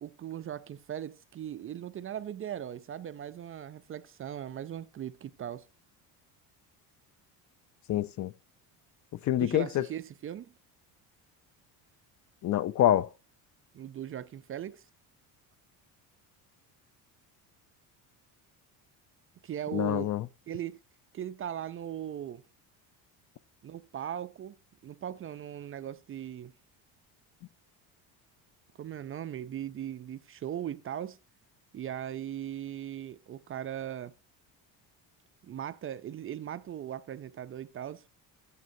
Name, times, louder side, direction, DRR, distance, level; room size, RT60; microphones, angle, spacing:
voice 1, 0.0-5.7 9.4-10.5 13.7-14.8 19.4-20.1 20.5-20.8 21.1-22.4 23.6-24.6 24.8-26.5 28.8-31.2 31.7-34.1 35.4-38.0, right 10 dB, 30° right, 0.5 m, -39 dB
voice 2, 7.9-8.3 9.2-9.9 12.4-13.1 19.7-20.3, left 12 dB, 45° left, 0.5 m, -26 dB
14.5 x 9.4 x 2.7 m
cardioid pair, 135°, 41 cm